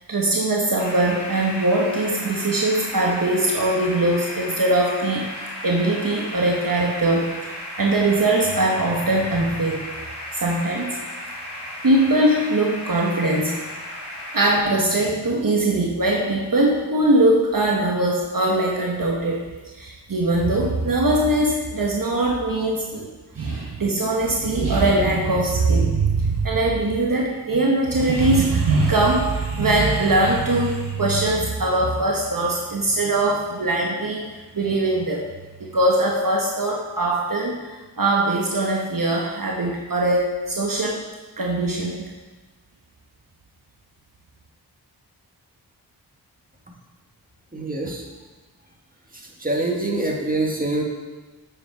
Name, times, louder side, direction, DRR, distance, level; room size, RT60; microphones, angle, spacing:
voice 1, 0.1-7.5 7.8-9.8 10.3-11.0 11.8-13.6 14.3-19.4 19.7-23.1 23.3-35.3 35.6-41.0 41.4-42.0, right 2 dB, 55° right, -1 dB, 1.2 m, -21 dB
sound 1, 0.8-14.6, left 1 dB, 80° left, 2.2 m, -35 dB
voice 2, 47.5-48.0 49.4-50.8, right 2 dB, 20° right, -1 dB, 1.8 m, -24 dB
8.3 x 7.2 x 4.7 m, 1.2 s
wide cardioid pair, 55°, 40 cm